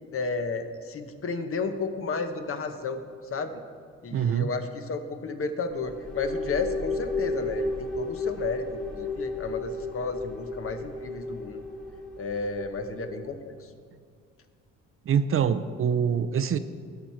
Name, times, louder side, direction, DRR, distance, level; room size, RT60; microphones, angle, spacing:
voice 1, 0.1-3.0 3.3-3.5 4.0-11.6 12.2-13.7, left 4 dB, 45° left, 7 dB, 0.9 m, -32 dB
voice 2, 4.1-4.5 15.1-16.6, right 7 dB, 45° right, 11 dB, 0.5 m, -24 dB
sound 1, 5.7-13.3, left 3 dB, 5° left, 1.6 m, -33 dB
16.5 x 5.7 x 4.4 m, 2.1 s
cardioid pair, 90°, 30 cm